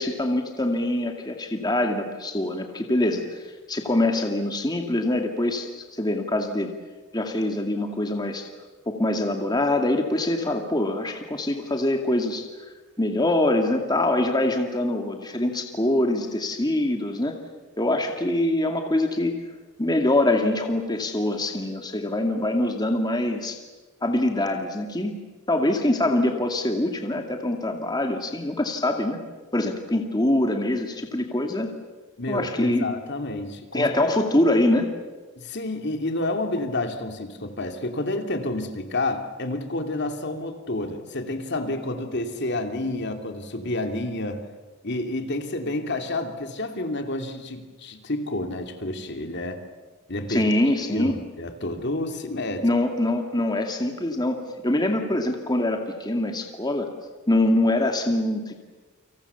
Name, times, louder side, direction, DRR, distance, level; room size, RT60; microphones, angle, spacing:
voice 1, 0.0-3.2 3.7-6.7 7.1-8.5 8.9-12.5 13.0-17.4 17.8-19.4 19.8-23.6 24.0-25.2 25.5-29.2 29.5-31.7 32.3-32.9 33.7-34.9 50.3-51.2 52.6-56.9 57.3-58.6, left 1 dB, 20° left, 4 dB, 2.3 m, -24 dB
voice 2, 32.2-33.9 35.3-44.4 44.8-49.6 50.1-50.4 50.9-52.6, left 2 dB, 55° left, 5 dB, 2.8 m, -29 dB
30.0 x 26.0 x 7.1 m, 1.3 s
head